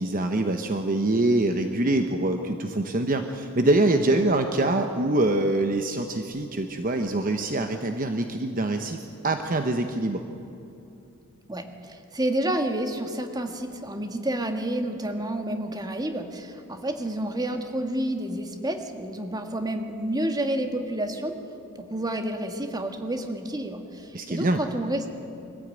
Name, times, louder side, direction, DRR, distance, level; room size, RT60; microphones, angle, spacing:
voice 1, 0.0-9.0 9.2-10.2 24.1-24.6, right 2 dB, 40° right, 6 dB, 1.0 m, -24 dB
voice 2, 11.5-21.3 21.7-25.1, right 1 dB, 20° right, 5 dB, 1.7 m, -29 dB
23.0 x 15.0 x 9.0 m, 2.7 s
head